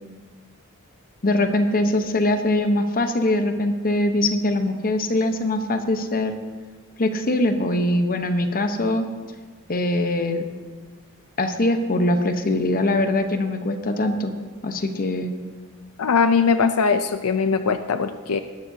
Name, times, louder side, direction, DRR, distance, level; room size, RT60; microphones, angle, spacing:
voice 1, 1.2-6.3 7.0-9.0 9.7-10.4 11.4-14.3 14.6-15.3, left 1 dB, 40° left, 7 dB, 1.0 m, -22 dB
voice 2, 16.0-18.4, left 5 dB, 85° left, 9 dB, 0.5 m, -20 dB
19.5 x 12.0 x 2.8 m, 1.5 s
head